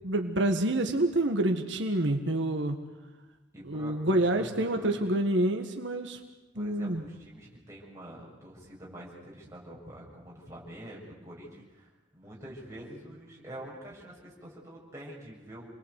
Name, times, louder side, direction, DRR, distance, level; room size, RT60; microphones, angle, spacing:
voice 1, 0.0-2.8 3.6-6.2 6.6-7.0, right 1 dB, 80° right, 5 dB, 1.7 m, -27 dB
voice 2, 3.5-5.0 6.5-15.7, right 1 dB, 15° right, -4 dB, 7.1 m, -46 dB
29.0 x 20.5 x 8.3 m, 1.1 s
head